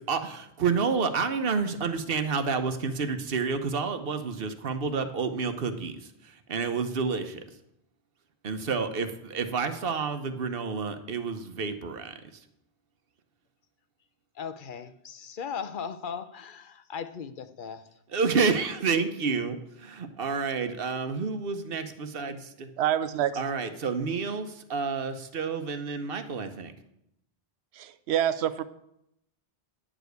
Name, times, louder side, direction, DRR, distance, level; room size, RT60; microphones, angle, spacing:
voice 1, 0.0-5.9 6.2-7.4 8.4-12.1 18.1-22.7 23.4-26.7, right 5 dB, 60° right, 9 dB, 1.1 m, -29 dB
voice 2, 14.3-17.9, left 7 dB, 55° left, 11 dB, 0.8 m, -38 dB
voice 3, 22.8-23.4 27.7-28.6, right 11 dB, 80° right, 14 dB, 0.9 m, -27 dB
10.0 x 5.0 x 7.9 m, 0.79 s
omnidirectional pair, 1.1 m